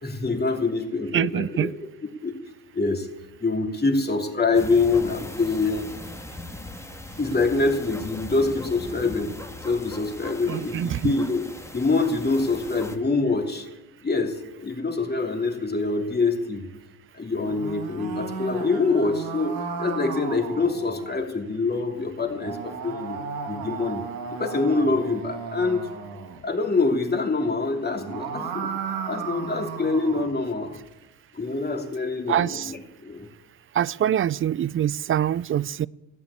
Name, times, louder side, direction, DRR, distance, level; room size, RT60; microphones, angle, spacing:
voice 1, 0.0-1.7 2.2-2.3 2.7-3.1 3.4-5.9 7.2-9.3 9.6-11.5 11.7-13.7 14.0-16.7 17.1-23.2 23.4-24.1 24.3-25.9 26.4-28.7 29.1-30.8 31.3-33.3, left 3 dB, 25° left, 3.0 m, -25 dB
voice 2, 1.1-1.7 10.5-11.1 32.3-32.7 33.8-35.9, right 10 dB, 35° right, 0.4 m, -24 dB
sound 1, 4.5-13.0, left 1 dB, 5° left, 1.8 m, -39 dB
sound 2, 17.3-21.2 22.2-26.4 27.8-30.3, right 5 dB, 75° right, 2.6 m, -34 dB
14.0 x 9.7 x 8.5 m
hypercardioid pair, 60°, 38 cm